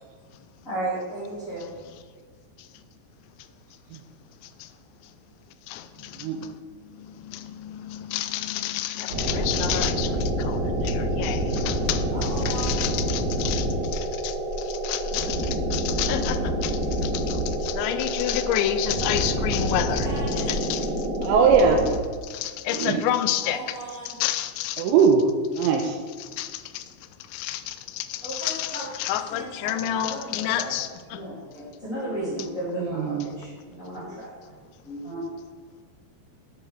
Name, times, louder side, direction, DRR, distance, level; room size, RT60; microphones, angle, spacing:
voice 1, 0.6-1.7 12.1-12.8 19.8-20.6 23.4-24.2 28.2-28.9 29.3-30.7 31.1-34.3 34.8-35.2, right 1 dB, 20° left, -9 dB, 2.6 m, -35 dB
voice 2, 5.7-6.6 7.0-20.9 22.2-23.8 24.1-24.8 25.6-25.9 26.2-26.8 27.3-31.2, left 12 dB, 85° left, 11 dB, 2.8 m, -30 dB
sound 1, 9.1-21.9, equal, 50° right, 2.5 m, -27 dB
voice 3, 21.2-21.9 22.7-23.0 24.8-25.3 25.5-26.0 32.8-33.3, right 6 dB, 90° right, 2 dB, 2.9 m, -20 dB
10.0 x 8.1 x 3.5 m, 1.6 s
omnidirectional pair, 5.1 m